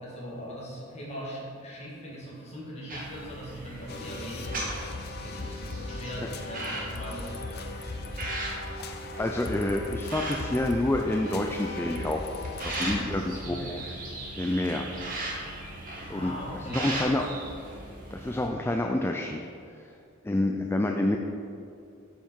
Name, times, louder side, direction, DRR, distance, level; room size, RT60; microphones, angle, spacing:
voice 1, 0.0-4.7 5.2-7.8 13.0-13.8 14.7-14.9 16.1-16.9, equal, 35° left, -5 dB, 2.2 m, -40 dB
sound 1, 2.9-18.5, right 1 dB, 45° right, 1.5 m, -38 dB
sound 2, 3.9-13.0, left 3 dB, 50° left, 0.6 m, -38 dB
voice 2, 9.2-12.4 12.6-13.8 14.4-14.9 16.1-16.3 16.7-17.3 18.1-19.4 19.8-19.9 20.2-21.2, left 1 dB, 10° left, 3 dB, 0.3 m, -28 dB
9.0 x 5.6 x 4.6 m, 2.5 s
head